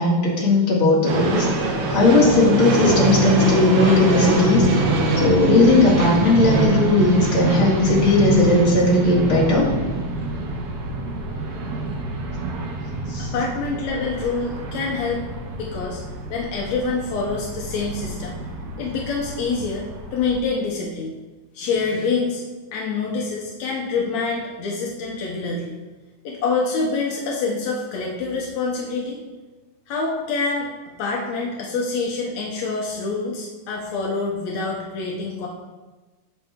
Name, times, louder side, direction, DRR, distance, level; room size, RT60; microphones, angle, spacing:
voice 1, 0.0-4.7 5.2-9.7 13.1-13.3, left 2 dB, 35° left, -5 dB, 2.7 m, -17 dB
sound 1, 1.1-20.4, right 2 dB, 75° right, 3.1 m, -25 dB
voice 2, 13.2-15.2 15.6-16.0 16.3-18.4 18.8-19.9 20.1-21.1 21.5-22.4 22.7-25.7 26.2-29.2 29.9-30.7 31.0-35.5, left 4 dB, 75° left, -2 dB, 1.6 m, -26 dB
16.0 x 5.8 x 3.6 m, 1.2 s
omnidirectional pair, 4.6 m